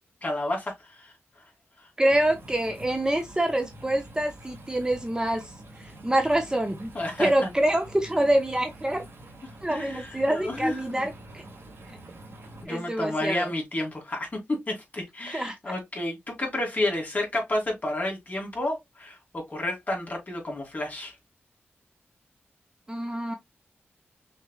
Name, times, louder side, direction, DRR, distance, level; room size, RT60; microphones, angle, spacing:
voice 1, 0.2-1.1 6.9-7.5 9.7-11.1 12.6-21.1, left 1 dB, 35° left, 2.7 m, -31 dB
voice 2, 2.0-5.5 5.8-6.9 7.2-9.0 9.6-11.4 12.7-13.5 15.3-15.7 22.9-23.4, right 1 dB, 15° right, 0.9 m, -26 dB
sound 1, 2.1-12.6, right 1 dB, 65° right, 2.3 m, -46 dB
6.2 x 3.6 x 2.3 m
wide cardioid pair, 80°, 4 cm